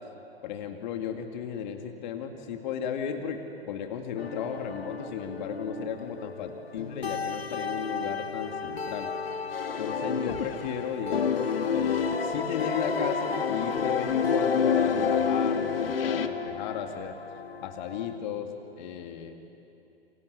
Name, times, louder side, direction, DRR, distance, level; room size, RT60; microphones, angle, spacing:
voice 1, 0.4-3.4 3.7-9.1 9.8-17.1 17.6-18.5 18.8-19.4, left 7 dB, 50° left, 5 dB, 2.3 m, -35 dB
sound 1, 4.2-18.2, left 5 dB, 85° left, 1.1 m, -35 dB
sound 2, 9.5-10.8 11.1-16.3, left 6 dB, 65° left, 1.7 m, -28 dB
29.5 x 24.5 x 8.2 m, 2.9 s
figure-of-eight pair, 105°, 30 cm